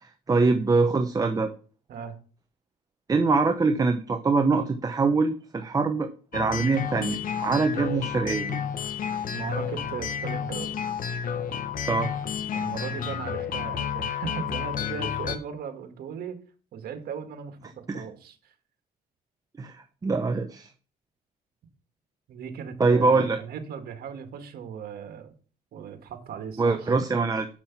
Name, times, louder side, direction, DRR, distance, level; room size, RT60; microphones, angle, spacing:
voice 1, 0.0-1.5 3.1-8.6 11.8-12.2 17.9-18.0 19.6-20.7 22.8-23.4 26.6-27.5, right 4 dB, 20° right, 7 dB, 0.9 m, -24 dB
sound 1, 6.3-15.4, left 8 dB, 55° left, 1.1 m, -31 dB
voice 2, 9.3-10.7 12.5-16.4 16.7-18.4 22.3-25.4 25.7-26.9, right 7 dB, 65° right, 7 dB, 1.9 m, -37 dB
7.4 x 6.2 x 6.0 m, 0.39 s
cardioid pair, 110°, 17 cm